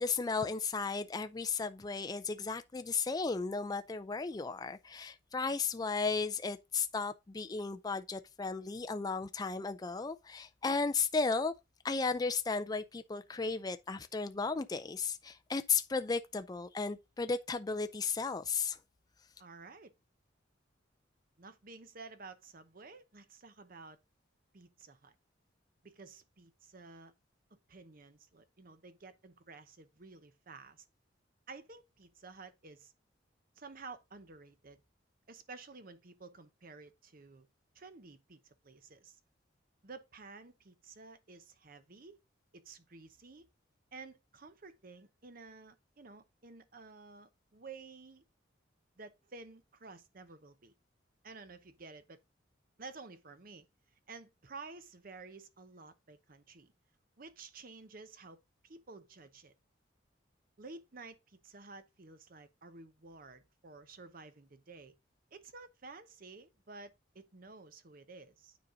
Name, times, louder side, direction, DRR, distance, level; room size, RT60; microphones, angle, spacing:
voice 1, 0.0-11.5 11.8-18.8, left 4 dB, 20° left, 0.4 m, -34 dB
voice 2, 19.4-19.9 21.4-24.0 24.5-25.1 25.8-27.1 27.5-30.8 31.5-32.9 33.6-34.8 35.3-37.5 37.7-39.2 39.8-42.2 42.5-43.5 43.9-48.2 49.0-50.7 51.2-52.2 52.8-53.7 54.1-56.7 57.2-58.4 58.6-59.5 60.6-65.0 65.3-68.6, right 3 dB, 50° right, 0.8 m, -52 dB
9.5 x 4.1 x 3.8 m
head